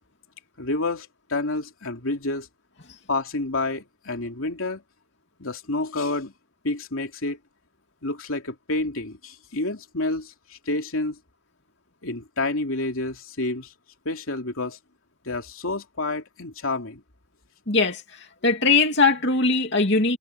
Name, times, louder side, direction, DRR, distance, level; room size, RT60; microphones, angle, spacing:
voice 1, 0.6-2.5 3.1-4.8 5.4-6.3 6.6-7.4 8.0-11.2 12.0-13.7 14.0-14.8 15.2-17.0, left 2 dB, 85° left, 3.1 m, -29 dB
voice 2, 17.7-20.2, left 3 dB, 55° left, 2.9 m, -21 dB
head